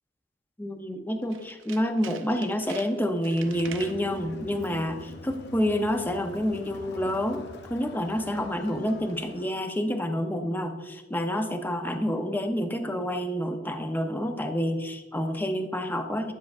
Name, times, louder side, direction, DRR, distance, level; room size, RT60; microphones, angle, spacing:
voice 1, 0.6-16.3, equal, 10° left, 6 dB, 0.5 m, -28 dB
Tools, 1.2-4.0 4.5-4.9 5.1-5.2, right 9 dB, 70° right, 0.5 m, -46 dB
Crowd, 3.3-9.7, left 3 dB, 60° left, 0.6 m, -44 dB
9.2 x 7.4 x 2.4 m, 1.3 s
head